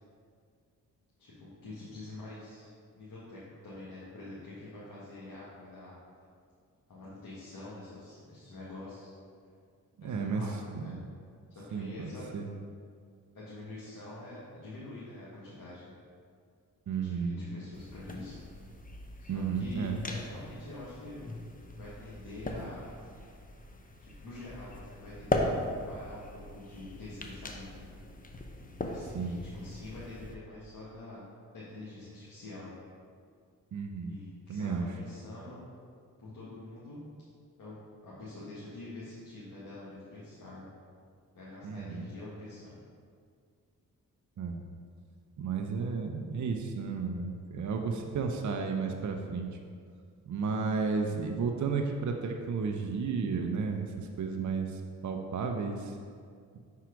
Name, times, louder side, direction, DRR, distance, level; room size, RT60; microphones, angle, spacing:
voice 1, 1.2-2.7 2.9-5.9 6.9-9.1 10.0-11.0 11.5-12.3 13.3-15.9 17.0-18.4 19.2-21.2 21.8-22.9 24.0-25.5 25.9-27.9 28.8-31.3 31.5-32.7 34.1-35.6 36.2-37.0 37.6-37.7 38.0-40.7 41.3-42.7, left 2 dB, 60° left, -9 dB, 1.8 m, -46 dB
voice 2, 10.0-10.4 10.7-11.0 11.7-12.5 16.9-17.4 19.3-20.0 29.1-29.4 33.7-34.2 34.5-34.9 41.6-42.1 44.4-44.6 45.4-49.6 50.3-56.0, right 5 dB, 50° right, 3 dB, 0.7 m, -33 dB
sound 1, 17.7-30.4, left 1 dB, 20° left, 0.8 m, -39 dB
5.7 x 4.7 x 5.1 m, 2.1 s
supercardioid pair, 50°, 38 cm